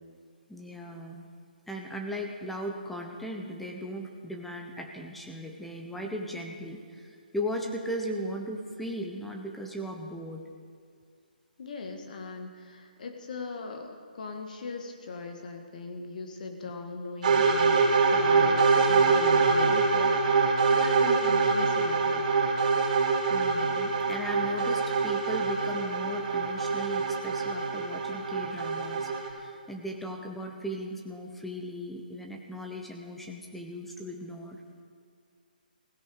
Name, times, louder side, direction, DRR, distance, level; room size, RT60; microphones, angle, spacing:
voice 1, 0.5-1.3 1.7-10.4 16.6-16.7 23.3-34.6, equal, 5° left, 1 dB, 1.1 m, -37 dB
voice 2, 11.6-17.8 18.1-22.3, left 4 dB, 55° left, 4 dB, 1.8 m, -39 dB
sound 1, 17.2-29.3, right 4 dB, 50° right, 2.9 m, -24 dB
16.5 x 15.5 x 4.9 m, 2.1 s
figure-of-eight pair, 140°, 5 cm